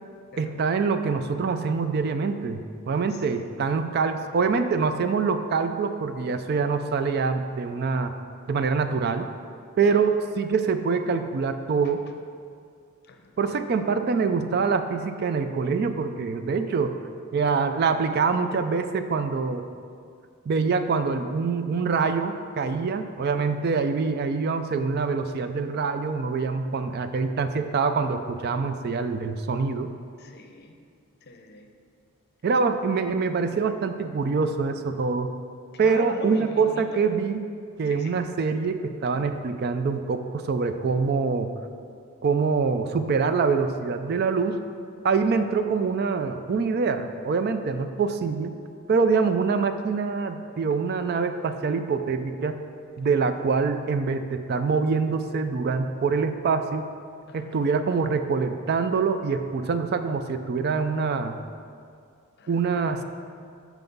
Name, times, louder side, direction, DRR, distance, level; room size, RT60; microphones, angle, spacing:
voice 1, 0.4-8.1 8.5-9.3 9.8-12.1 13.4-16.9 17.3-19.7 20.5-29.9 32.4-35.3 35.8-37.4 37.8-41.5 42.2-44.6 45.0-48.6 48.9-52.6 53.0-56.8 57.3-61.4 62.5-63.0, right 5 dB, 45° right, 9 dB, 0.3 m, -25 dB
voice 2, 13.1-13.6 30.2-30.7 31.3-31.7 35.8-37.0 37.9-38.1 57.3-57.6 62.4-63.0, left 3 dB, 50° left, 5 dB, 0.6 m, -41 dB
6.0 x 5.7 x 5.3 m, 2.3 s
head